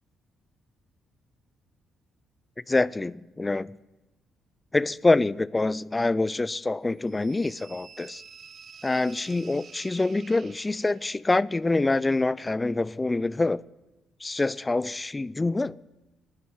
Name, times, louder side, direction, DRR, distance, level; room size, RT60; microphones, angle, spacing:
voice 1, 2.7-3.8 4.7-8.2 8.8-13.6 14.2-15.8, left 2 dB, 20° left, 0.4 m, -25 dB
sound 1, 7.1-11.2, right 6 dB, 50° right, 0.6 m, -49 dB
12.0 x 9.6 x 9.3 m
cardioid pair, 90°, 0 cm